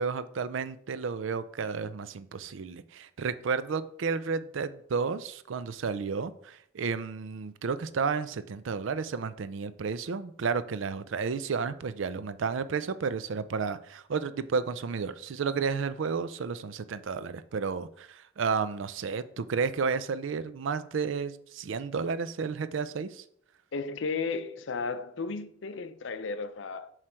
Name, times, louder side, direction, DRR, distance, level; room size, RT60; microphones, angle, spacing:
voice 1, 0.0-23.2, right 5 dB, 75° right, 0.4 m, -32 dB
voice 2, 23.7-26.9, left 4 dB, 70° left, 0.5 m, -34 dB
7.4 x 3.2 x 4.4 m
head